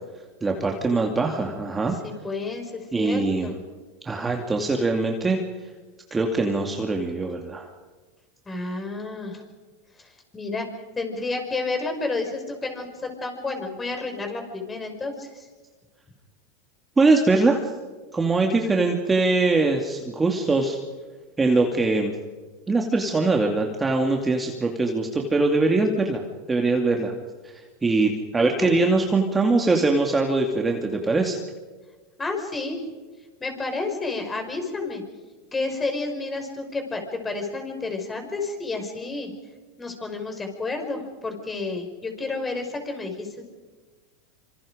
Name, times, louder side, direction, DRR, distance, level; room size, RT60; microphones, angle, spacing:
voice 1, 0.4-2.0 2.9-3.6 4.0-5.4 6.1-7.7 17.0-17.6 18.1-20.8 21.4-22.2 22.7-26.2 26.5-27.1 27.4-31.4, right 3 dB, 15° right, 2 dB, 2.4 m, -22 dB
voice 2, 2.0-3.6 8.5-9.4 10.0-10.7 11.0-15.5 28.4-28.7 32.2-32.8 33.4-35.0 35.5-39.3 39.8-43.4, left 3 dB, 15° left, 4 dB, 5.8 m, -30 dB
26.5 x 25.5 x 5.2 m, 1.3 s
hypercardioid pair, 110°, 0 cm